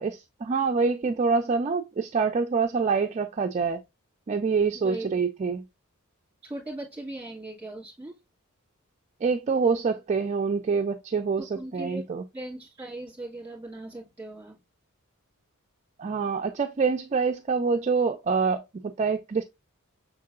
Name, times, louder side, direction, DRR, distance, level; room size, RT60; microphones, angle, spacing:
voice 1, 0.0-3.8 4.3-5.6 9.2-12.2 16.0-19.4, right 5 dB, 30° right, 0.3 m, -26 dB
voice 2, 4.7-5.2 6.4-8.2 11.4-12.1 12.3-14.6, right 2 dB, 10° right, 2.2 m, -39 dB
5.8 x 3.8 x 2.4 m
head